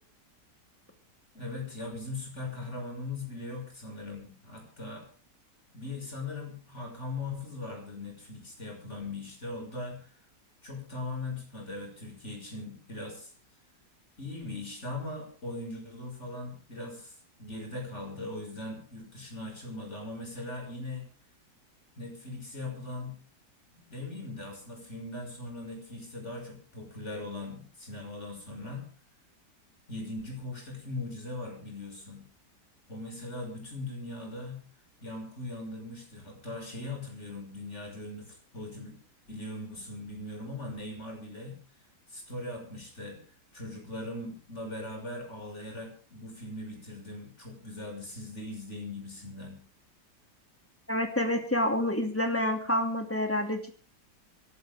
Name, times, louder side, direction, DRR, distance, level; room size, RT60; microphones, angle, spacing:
voice 1, 1.3-5.1 5.7-10.0 10.6-13.3 14.2-17.1 17.4-21.1 22.0-23.2 23.7-28.8 29.9-32.3 32.9-34.6 35.0-39.0 39.3-41.6 42.1-43.2 43.5-49.6, left 2 dB, 40° left, 1 dB, 6.3 m, -40 dB
voice 2, 50.9-53.6, left 1 dB, 5° left, 4 dB, 2.6 m, -28 dB
25.5 x 12.0 x 3.6 m, 0.39 s
omnidirectional pair, 1.9 m